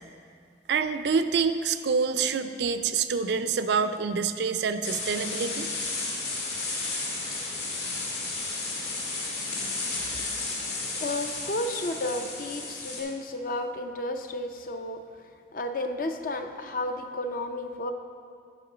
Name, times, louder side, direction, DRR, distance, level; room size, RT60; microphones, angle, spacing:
voice 1, 0.7-5.7, right 5 dB, 70° right, 10 dB, 0.4 m, -26 dB
sound 1, 4.8-13.0, left 3 dB, 65° left, 2.3 m, -33 dB
voice 2, 11.0-15.0 15.5-17.9, left 1 dB, 50° left, 6 dB, 0.5 m, -32 dB
10.0 x 5.3 x 5.0 m, 2.3 s
head